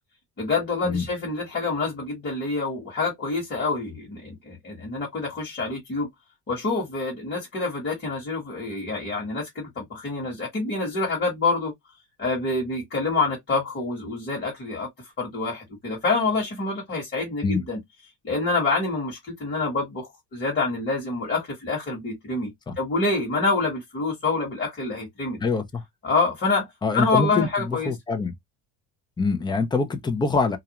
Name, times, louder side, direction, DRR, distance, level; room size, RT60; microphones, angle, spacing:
voice 1, 0.4-6.1 6.5-11.7 12.2-14.9 15.2-17.8 18.2-25.4 26.0-26.7 26.9-27.9, left 3 dB, 30° left, 1.2 m, -27 dB
voice 2, 25.4-25.8 26.8-28.3 29.2-30.6, left 4 dB, 10° left, 0.5 m, -25 dB
2.5 x 2.1 x 2.8 m
cardioid pair, 120°, 37 cm